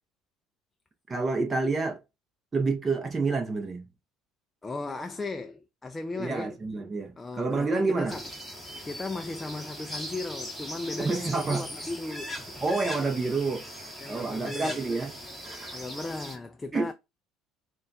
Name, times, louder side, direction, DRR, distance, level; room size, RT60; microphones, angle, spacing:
voice 1, 1.1-2.0 2.5-3.9 6.2-8.2 11.0-11.7 12.6-13.8 14.1-15.8 16.7-16.9, right 3 dB, 20° right, 0.7 m, -29 dB
voice 2, 4.6-6.6 7.2-8.3 8.8-12.6 14.0-14.8 15.7-16.9, left 3 dB, 15° left, 0.3 m, -36 dB
sound 1, 8.1-16.4, equal, 5° right, 1.5 m, -40 dB
6.5 x 2.3 x 2.6 m
cardioid pair, 130°, 0 cm